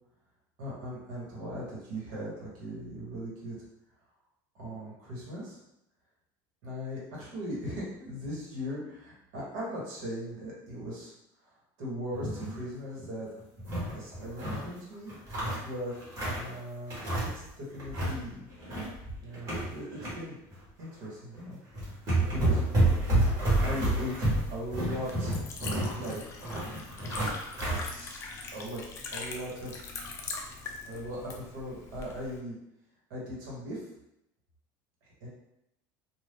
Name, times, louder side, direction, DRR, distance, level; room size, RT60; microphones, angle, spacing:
voice 1, 0.6-3.6 4.5-5.6 6.6-11.1 11.4-13.3 13.8-15.1 15.6-15.9 16.3-18.5 19.2-19.9 20.1-20.4 20.8-22.6 23.6-25.4 25.9-26.2 27.9-28.2 28.5-28.8 29.1-29.8 30.8-32.6 33.1-33.8 35.0-35.3, equal, 70° right, -5 dB, 1.3 m, -39 dB
sound 1, 12.1-12.6 13.0-13.1 13.4-14.7 15.1-16.5 16.9-17.5 17.7-18.2 18.5-20.1 20.5-20.7 21.4-21.5 21.7-27.8, right 1 dB, 30° right, 1.3 m, -29 dB
Liquid, 23.8-32.4, left 4 dB, 30° left, 0.4 m, -42 dB
2.7 x 2.4 x 3.5 m, 0.83 s
cardioid pair, 170°, 10 cm